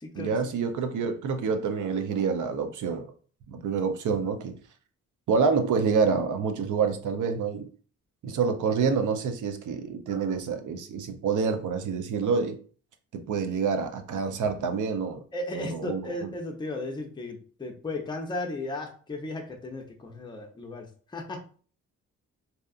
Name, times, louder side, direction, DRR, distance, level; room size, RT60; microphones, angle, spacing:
voice 1, 0.2-3.1 3.5-4.5 5.3-7.7 8.2-12.6 13.1-15.2 15.5-16.3, right 5 dB, 65° right, 7 dB, 0.6 m, -27 dB
voice 2, 15.3-20.9 21.1-21.4, left 2 dB, 15° left, 2 dB, 0.6 m, -35 dB
2.7 x 2.3 x 2.4 m, 0.42 s
cardioid pair, 70°, 33 cm